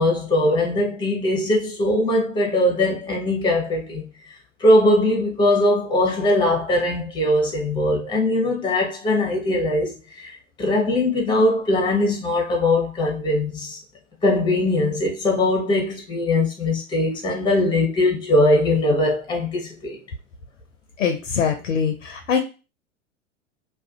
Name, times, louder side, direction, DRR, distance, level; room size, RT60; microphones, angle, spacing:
voice 1, 0.0-4.0 4.6-10.3 10.6-13.8 14.2-20.0, left 1 dB, 10° left, 0.8 m, -21 dB
voice 2, 21.0-22.4, left 7 dB, 80° left, 0.6 m, -23 dB
2.4 x 2.4 x 2.4 m
figure-of-eight pair, 90°, 37 cm